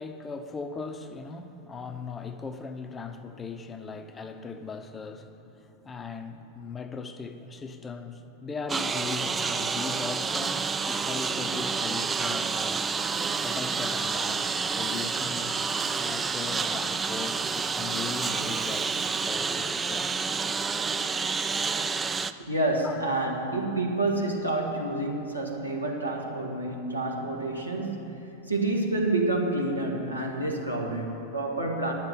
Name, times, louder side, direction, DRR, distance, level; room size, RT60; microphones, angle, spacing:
voice 1, 0.0-12.8 13.4-15.6 16.0-18.9 19.3-20.3 22.2-22.3 22.8-23.0, left 4 dB, 20° left, 8 dB, 0.7 m, -39 dB
Engine, 8.7-22.3, right 5 dB, 15° right, 0.3 m, -29 dB
voice 2, 22.4-28.2 28.5-31.9, right 2 dB, 85° right, -1 dB, 1.5 m, -28 dB
9.5 x 7.4 x 9.2 m, 2.9 s
figure-of-eight pair, 90°, 0 cm